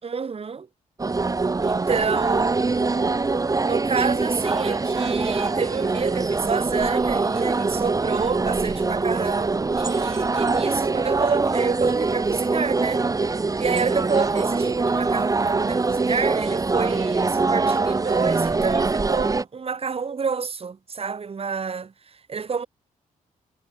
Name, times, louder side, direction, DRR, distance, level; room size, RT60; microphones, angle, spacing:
voice 1, 0.0-0.7 1.6-3.2 3.6-22.7, right 5 dB, 40° right, 4.4 m, -29 dB
sound 1, 1.0-19.4, right 3 dB, 25° right, 1.4 m, -23 dB
cardioid pair, 95°, 15 cm